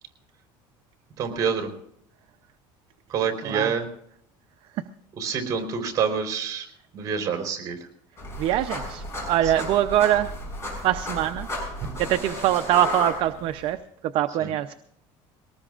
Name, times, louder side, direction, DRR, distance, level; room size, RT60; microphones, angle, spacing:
voice 1, 1.2-1.7 3.1-3.9 5.2-6.7 6.9-7.8 9.4-9.5 14.4-14.5, right 6 dB, 35° right, 3 dB, 3.9 m, -27 dB
sound 1, 8.2-13.7, left 2 dB, 25° left, 7.1 m, -34 dB
voice 2, 8.4-10.3 10.8-11.5 12.0-13.8 14.1-14.7, right 12 dB, 50° right, 9 dB, 0.6 m, -23 dB
23.0 x 19.0 x 2.5 m, 0.71 s
cardioid pair, 155°, 11 cm